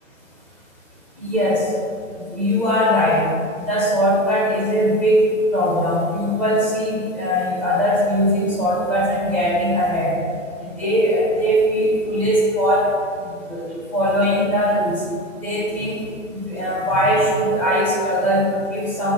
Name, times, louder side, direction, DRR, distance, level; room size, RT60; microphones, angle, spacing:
voice 1, 1.2-1.7 2.2-3.3 3.6-5.3 5.5-10.1 10.6-12.9 13.2-15.0 15.4-16.0 16.3-19.1, equal, 5° left, -6 dB, 0.8 m, -20 dB
7.1 x 6.3 x 3.9 m, 2.4 s
figure-of-eight pair, 145°, 40 cm